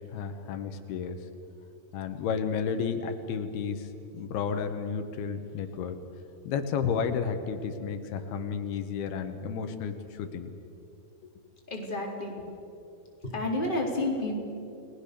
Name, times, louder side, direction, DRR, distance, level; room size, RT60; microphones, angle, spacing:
voice 1, 0.1-1.2 1.9-3.9 4.1-6.0 6.4-10.5, left 6 dB, 90° left, 7 dB, 3.4 m, -32 dB
voice 2, 11.7-12.4 13.2-14.4, left 1 dB, 15° left, -1 dB, 3.8 m, -30 dB
30.0 x 20.0 x 6.9 m, 2.7 s
omnidirectional pair, 4.4 m